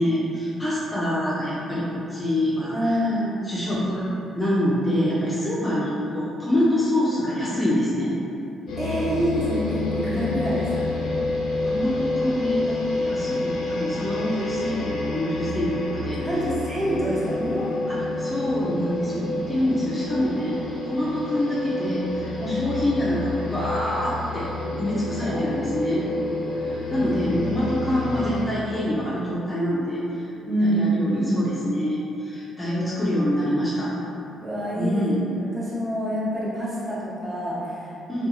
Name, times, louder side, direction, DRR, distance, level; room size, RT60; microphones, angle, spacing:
voice 1, 0.0-3.2 3.4-8.2 11.6-16.3 17.9-24.5 24.8-26.1 26.5-33.9 34.8-35.2 38.1-38.3, left 1 dB, 15° left, -8 dB, 0.5 m, -26 dB
voice 2, 2.7-3.5 5.5-5.7 8.8-11.0 16.2-17.9 22.4-22.6 25.1-25.7 26.8-27.0 30.5-31.4 32.6-32.8 34.4-35.0 35.4-37.9, equal, 25° right, -10 dB, 1.0 m, -26 dB
sound 1, 8.7-28.4, left 2 dB, 80° left, 0.4 m, -29 dB
2.5 x 2.3 x 2.6 m, 2.8 s
cardioid pair, 90°, 0 cm